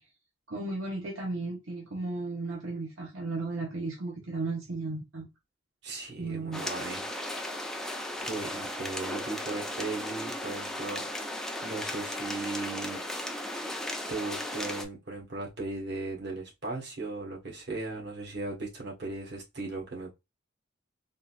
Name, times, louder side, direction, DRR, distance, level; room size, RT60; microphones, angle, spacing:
voice 1, 0.5-5.3 6.2-6.7, right 3 dB, 85° right, 1.0 m, -35 dB
voice 2, 5.8-7.0 8.2-11.0 11.6-13.0 14.1-20.1, right 3 dB, 60° right, 1.5 m, -37 dB
sound 1, 6.5-14.9, left 1 dB, 5° left, 0.4 m, -36 dB
3.8 x 2.6 x 2.4 m
head